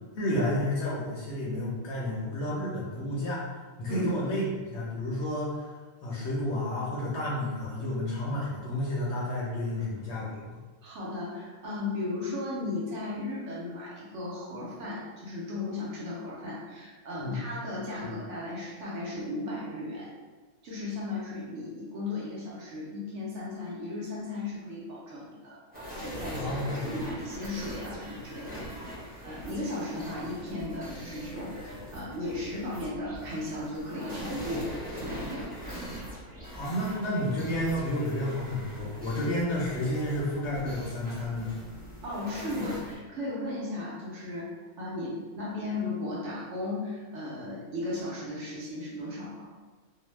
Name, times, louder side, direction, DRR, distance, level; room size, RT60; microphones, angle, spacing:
voice 1, 0.2-3.4 3.8-5.7 6.0-10.6 17.2-17.4 18.0-18.1 26.3-26.9 36.5-41.5, left 1 dB, 65° left, -6 dB, 0.8 m, -31 dB
voice 2, 10.8-20.1 20.6-25.6 25.9-28.7 29.2-35.5 42.0-49.5, left 2 dB, 60° right, -6 dB, 0.9 m, -36 dB
sound 1, 25.7-42.9, equal, 10° right, 0.5 m, -41 dB
2.6 x 2.0 x 3.1 m, 1.4 s
omnidirectional pair, 1.5 m